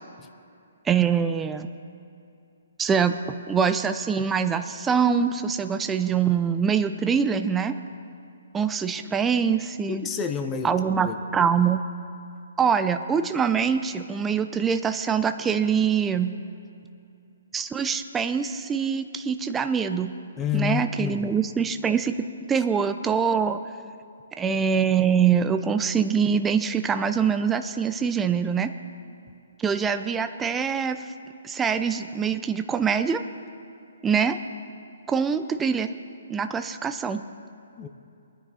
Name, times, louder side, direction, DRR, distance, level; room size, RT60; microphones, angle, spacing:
voice 1, 0.8-1.7 2.8-3.2 3.5-7.7 8.5-10.0 10.6-11.8 12.6-16.3 17.5-20.1 20.5-22.2 22.5-23.6 24.4-28.7 29.6-31.0 31.4-33.2 34.0-34.4 35.1-35.9 36.3-37.2, right 6 dB, 10° right, 8 dB, 0.5 m, -24 dB
voice 2, 9.9-11.2 20.4-21.4 37.8-37.9, left 7 dB, 15° left, 6 dB, 0.9 m, -29 dB
22.0 x 10.0 x 4.2 m, 2.6 s
hypercardioid pair, 145°, 0 cm